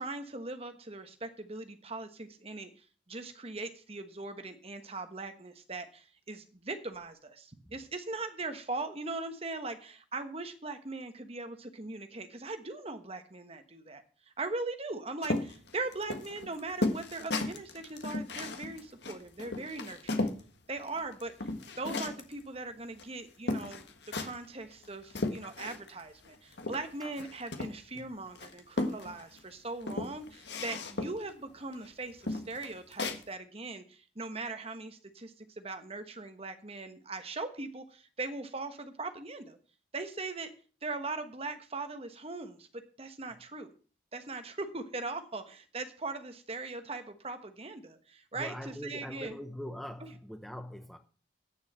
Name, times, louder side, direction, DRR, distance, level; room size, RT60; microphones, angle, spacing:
voice 1, 0.0-2.7 3.1-14.0 14.4-20.3 20.7-21.3 21.8-39.6 39.9-40.5 40.8-43.7 44.1-49.4 50.0-50.2, right 3 dB, 30° right, 1.2 m, -40 dB
sound 1, 15.2-20.4 20.8-22.3 23.0-23.1 23.5-24.5 24.8-26.0 26.3-28.0 28.4-29.4 29.8-31.3 31.7-31.9 32.2-33.2, left 2 dB, 65° left, 1.5 m, -35 dB
voice 2, 48.3-51.0, equal, ahead, 0.8 m, -42 dB
9.5 x 7.3 x 7.5 m
head